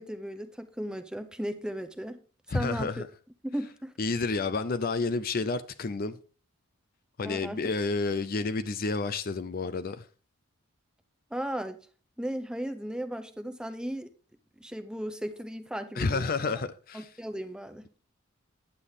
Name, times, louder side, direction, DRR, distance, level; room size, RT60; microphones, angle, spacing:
voice 1, 0.0-2.2 2.5-3.0 3.4-3.9 7.2-7.6 11.3-11.8 12.2-14.1 14.6-16.3 16.9-18.0, equal, 5° right, 0.7 m, -36 dB
voice 2, 2.5-3.1 4.0-6.2 7.2-10.1 16.0-17.1, left 3 dB, 40° left, 0.5 m, -30 dB
9.8 x 8.3 x 3.6 m
head